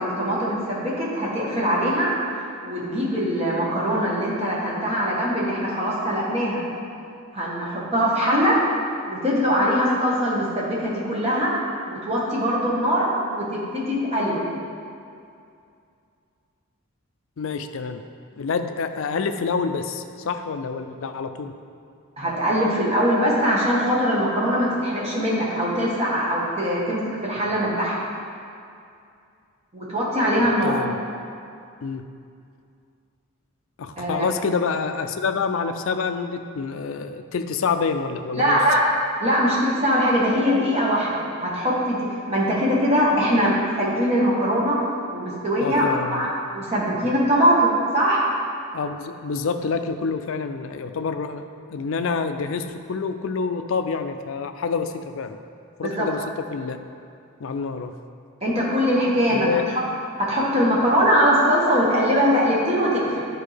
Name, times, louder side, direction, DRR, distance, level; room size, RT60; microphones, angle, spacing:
voice 1, 0.0-2.1 2.6-6.6 7.3-8.6 9.1-11.5 11.9-14.4 22.2-28.0 29.7-30.8 34.0-34.3 38.3-38.8 39.2-44.8 45.1-48.2 55.8-56.1 58.4-59.5 60.2-63.3, equal, 30° right, -6 dB, 1.5 m, -22 dB
voice 2, 17.4-18.0 18.4-21.5 30.6-31.0 31.8-32.0 33.8-38.6 45.6-46.2 47.0-47.1 48.7-55.4 55.8-56.8 57.4-57.9 59.3-59.6, left 5 dB, 65° left, 8 dB, 0.4 m, -27 dB
11.0 x 4.5 x 3.4 m, 2.4 s
head